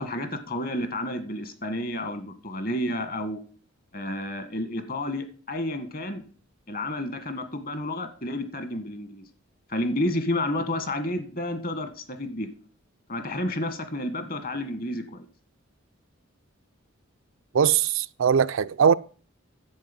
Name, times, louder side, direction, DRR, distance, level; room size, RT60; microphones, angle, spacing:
voice 1, 0.0-3.4 3.9-6.2 6.7-9.3 9.7-12.5 13.1-15.3, left 1 dB, 45° left, 1.6 m, -30 dB
voice 2, 17.5-18.9, right 7 dB, 65° right, 0.4 m, -21 dB
10.5 x 7.8 x 5.3 m
head